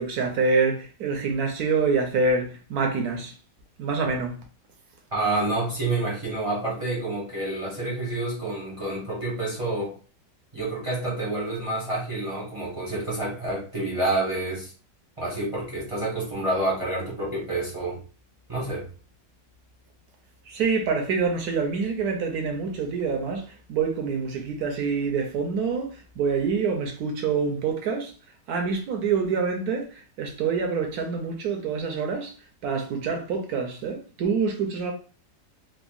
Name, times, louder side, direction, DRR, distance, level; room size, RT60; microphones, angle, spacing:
voice 1, 0.0-3.3 3.8-4.3 20.5-25.9 26.2-28.1 28.5-32.3 32.6-34.9, right 5 dB, 70° right, 1.0 m, -26 dB
voice 2, 5.1-10.0 10.5-14.7 15.2-18.0 18.5-18.9, right 2 dB, 30° right, 0.5 m, -28 dB
3.6 x 2.1 x 2.3 m
omnidirectional pair, 2.0 m